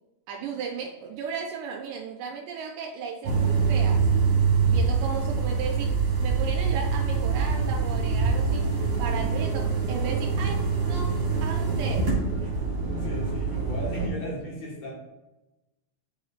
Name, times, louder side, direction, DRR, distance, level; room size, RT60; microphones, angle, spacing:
voice 1, 0.3-4.1 4.6-5.9 6.2-8.7 9.0-11.2 11.4-12.2, right 6 dB, 85° right, 2 dB, 2.1 m, -35 dB
sound 1, 3.2-14.1, right 5 dB, 55° right, 2.3 m, -25 dB
voice 2, 13.0-14.9, equal, 60° left, -4 dB, 2.4 m, -35 dB
9.5 x 4.3 x 2.4 m, 1.0 s
omnidirectional pair, 3.6 m